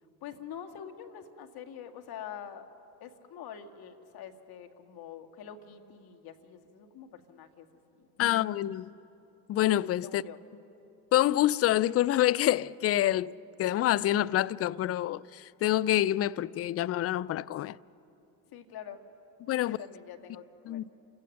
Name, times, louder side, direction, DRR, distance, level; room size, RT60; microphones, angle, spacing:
voice 1, 0.2-2.7 3.0-7.7 8.0-8.4 10.0-10.4 18.5-19.0 19.6-20.8, left 8 dB, 55° left, 1.9 m, -45 dB
voice 2, 8.2-8.9 9.5-10.2 11.1-13.3 13.6-17.8 19.5-19.8 20.7-20.8, left 13 dB, 35° left, 0.4 m, -27 dB
28.5 x 16.5 x 6.4 m
hypercardioid pair, 70°, 45 cm